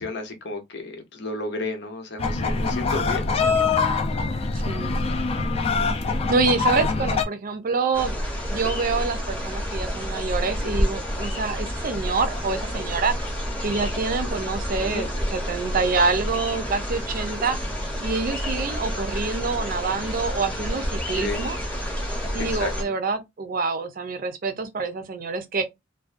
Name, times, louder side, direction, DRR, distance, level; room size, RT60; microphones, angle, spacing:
voice 1, 0.0-3.5 14.9-15.1 21.2-21.4 22.5-22.7, left 2 dB, 65° left, 0.7 m, -32 dB
sound 1, 2.2-7.2, left 4 dB, 30° left, 0.4 m, -24 dB
voice 2, 4.7-5.0 6.3-8.1 8.5-13.1 13.6-17.6 18.0-21.6 22.3-25.6, right 4 dB, 50° right, 0.5 m, -26 dB
sound 2, 7.9-22.8, equal, 5° left, 0.8 m, -29 dB
2.4 x 2.2 x 2.4 m
head